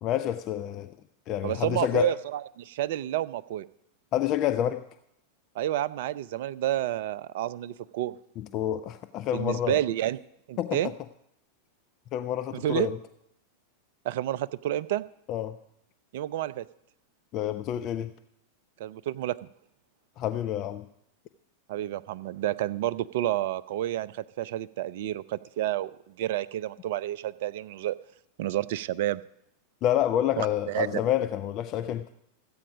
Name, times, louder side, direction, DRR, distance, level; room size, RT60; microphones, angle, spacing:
voice 1, 0.0-0.9 1.3-2.1 4.1-4.8 8.4-9.8 10.6-10.8 12.1-13.0 15.3-15.5 17.3-18.1 20.2-20.8 29.8-32.0, left 11 dB, 35° left, 10 dB, 0.5 m, -28 dB
voice 2, 1.4-3.7 5.6-8.2 9.3-10.2 10.5-10.9 12.5-12.9 14.0-15.0 16.1-16.7 18.8-19.5 21.7-27.9 28.4-29.2 30.4-31.0, right 13 dB, 55° right, 18 dB, 0.4 m, -30 dB
14.5 x 8.6 x 5.1 m, 0.78 s
figure-of-eight pair, 90°, 0 cm